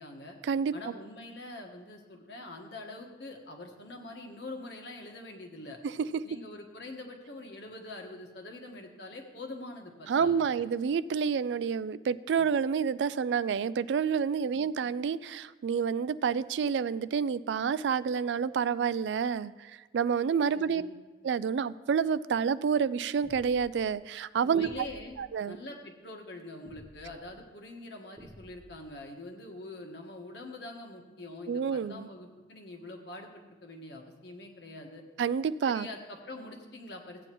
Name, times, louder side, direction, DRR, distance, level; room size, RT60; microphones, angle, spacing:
voice 1, 0.0-0.4 0.7-5.8 6.2-10.6 12.4-12.5 14.5-14.7 20.5-21.0 24.4-25.2 25.5-35.0 35.6-37.3, left 2 dB, 70° left, 2 dB, 1.4 m, -44 dB
voice 2, 10.1-20.8 21.2-24.7 25.2-25.6 31.5-32.1 35.2-35.9, right 6 dB, 80° right, 16 dB, 0.3 m, -29 dB
sound 1, 23.2-23.8 24.6-25.2 26.7-27.2 28.2-28.8, equal, 15° right, 0.7 m, -51 dB
15.5 x 8.8 x 3.0 m, 1.3 s
head